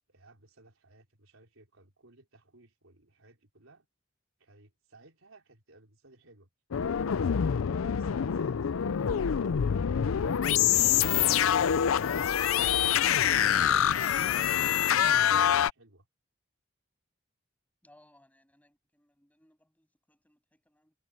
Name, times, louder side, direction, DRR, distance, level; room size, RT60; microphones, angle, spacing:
voice 1, 0.1-3.9 4.4-6.5 6.9-7.6 7.9-10.5 10.8-11.5 14.2-16.1, right 2 dB, 80° right, 4.2 m, -57 dB
sound 1, 6.7-15.7, left 9 dB, 90° left, 0.5 m, -25 dB
voice 2, 17.8-20.9, left 1 dB, 10° left, 7.7 m, -63 dB
head